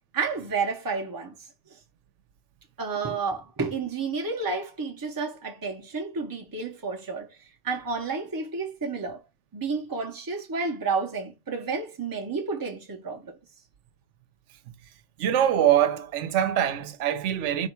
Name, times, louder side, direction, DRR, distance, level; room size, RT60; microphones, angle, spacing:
voice 1, 0.1-1.4 1.7-1.8 2.8-9.2 9.5-13.4, right 4 dB, 30° right, 0.4 m, -31 dB
voice 2, 15.2-17.7, right 10 dB, 90° right, 0.9 m, -23 dB
4.1 x 2.2 x 4.3 m
omnidirectional pair, 1.2 m